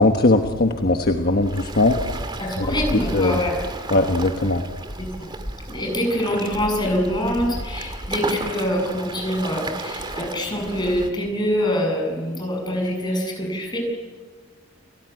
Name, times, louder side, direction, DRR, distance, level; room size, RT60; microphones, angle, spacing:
voice 1, 0.0-2.0 3.1-3.4 3.9-4.6, left 2 dB, 50° left, 4 dB, 1.3 m, -19 dB
Waves surf, 1.4-11.1, right 2 dB, 25° right, 2.2 m, -33 dB
voice 2, 2.4-3.6 5.0-5.3 5.7-13.8, equal, 20° left, 1 dB, 7.7 m, -25 dB
30.0 x 17.5 x 9.6 m, 1.5 s
head